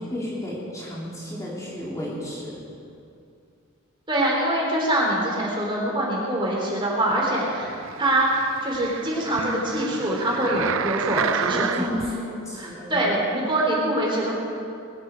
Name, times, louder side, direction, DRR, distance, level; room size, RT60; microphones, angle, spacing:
voice 1, 0.0-2.6 11.5-13.0, left 1 dB, 15° left, -6 dB, 3.0 m, -32 dB
voice 2, 4.1-7.7 8.0-11.9 12.6-14.3, right 1 dB, 25° right, -3 dB, 3.5 m, -24 dB
sound 1, 7.5-12.1 12.7-12.8, right 7 dB, 70° right, 0.5 m, -30 dB
20.5 x 13.0 x 5.1 m, 2.5 s
head